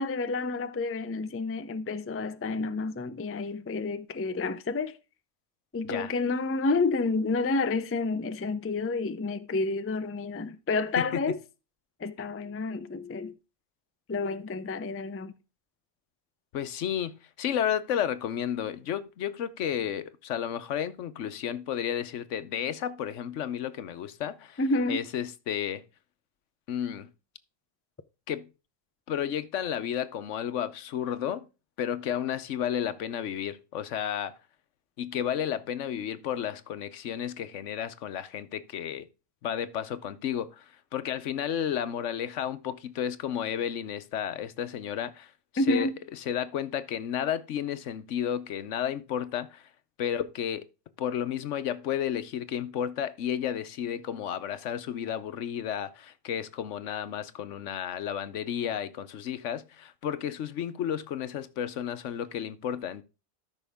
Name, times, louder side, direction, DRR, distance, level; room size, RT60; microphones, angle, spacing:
voice 1, 0.0-5.0 5.7-11.4 12.0-13.3 14.1-15.3 24.6-25.0 45.6-45.9, left 3 dB, 25° left, 0.3 m, -29 dB
voice 2, 16.5-24.6 24.9-25.8 26.7-27.1 28.3-28.5 29.1-31.5 31.8-34.3 35.0-39.1 39.4-45.9 46.3-49.7 50.0-50.7 51.0-63.0, left 9 dB, 85° left, 1.1 m, -32 dB
13.0 x 5.9 x 3.5 m
omnidirectional pair, 1.2 m